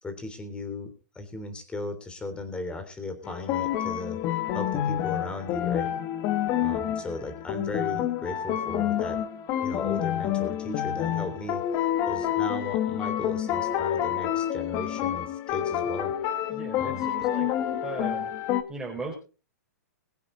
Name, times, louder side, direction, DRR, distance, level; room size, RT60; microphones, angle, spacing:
voice 1, 0.0-4.2 4.5-5.9 6.6-9.2 9.6-16.1 16.8-17.3, left 2 dB, 10° left, 9 dB, 3.5 m, -37 dB
sound 1, 3.2-18.6, left 11 dB, 35° left, 1.8 m, -28 dB
voice 2, 16.5-17.5 17.8-18.3 18.7-19.1, right 3 dB, 10° right, -2 dB, 4.3 m, -37 dB
22.0 x 8.8 x 4.0 m, 0.34 s
hypercardioid pair, 135°, 9 cm